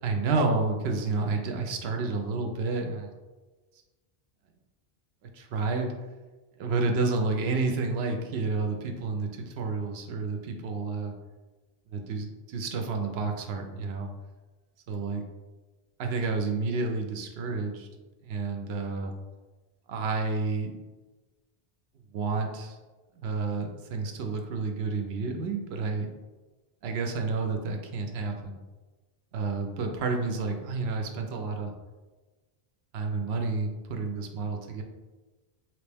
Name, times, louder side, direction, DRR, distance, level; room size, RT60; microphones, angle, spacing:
voice 1, 0.0-3.1 5.3-5.9 6.6-11.1 11.9-14.1 14.9-15.2 16.0-17.9 18.2-19.1 19.9-20.7 22.1-22.8 23.2-26.1 26.8-28.6 29.3-31.7 32.9-34.8, right 3 dB, 80° right, 3 dB, 0.8 m, -30 dB
3.1 x 2.9 x 3.3 m, 1.2 s
omnidirectional pair, 1.1 m